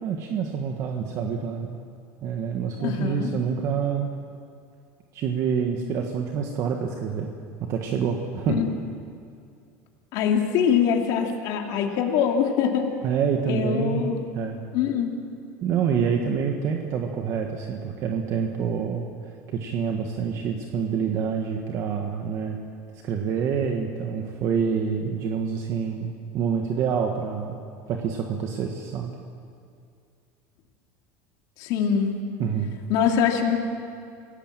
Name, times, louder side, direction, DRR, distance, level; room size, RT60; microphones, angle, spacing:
voice 1, 0.0-1.8 2.2-4.1 5.1-7.3 7.7-8.6 13.0-14.6 15.6-19.1 19.5-22.6 23.0-27.6 27.9-29.1 32.4-32.7, right 7 dB, 45° right, 2 dB, 1.7 m, -27 dB
voice 2, 2.8-3.3 8.6-8.7 10.1-12.9 13.5-14.3 14.7-15.1 31.6-32.2 32.9-33.6, left 7 dB, 60° left, 2 dB, 2.7 m, -23 dB
27.5 x 17.0 x 7.7 m, 2.4 s
cardioid pair, 150°, 7 cm